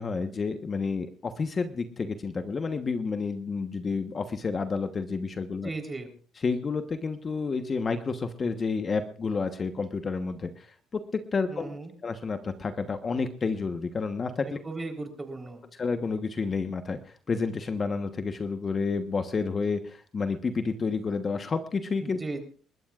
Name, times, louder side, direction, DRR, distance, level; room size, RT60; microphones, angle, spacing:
voice 1, 0.0-5.7 6.4-11.7 12.0-14.6 15.8-22.2, left 4 dB, 35° left, 8 dB, 1.2 m, -30 dB
voice 2, 5.6-6.1 11.5-11.9 14.6-15.6 22.0-22.4, right 3 dB, 20° right, 4 dB, 3.9 m, -36 dB
29.5 x 13.5 x 2.5 m, 0.41 s
cardioid pair, 90°, 0 cm